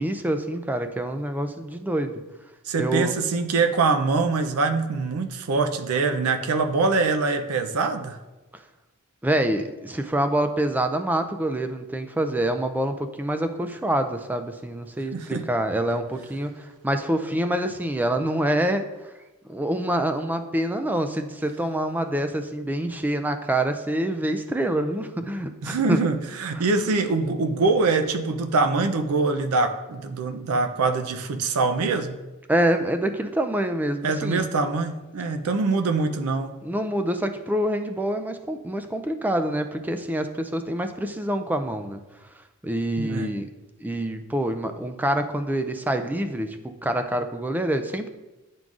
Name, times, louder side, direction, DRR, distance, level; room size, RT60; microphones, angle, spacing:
voice 1, 0.0-2.1 2.8-3.1 9.2-19.1 19.5-26.0 26.5-26.7 32.5-34.5 36.6-42.0 42.6-43.5 43.8-48.1, right 1 dB, 10° right, 8 dB, 0.3 m, -26 dB
voice 2, 2.7-8.2 15.1-15.4 25.6-32.2 34.0-36.6 43.0-43.3, right 3 dB, 80° right, 6 dB, 0.5 m, -24 dB
10.5 x 3.8 x 2.4 m, 1.1 s
head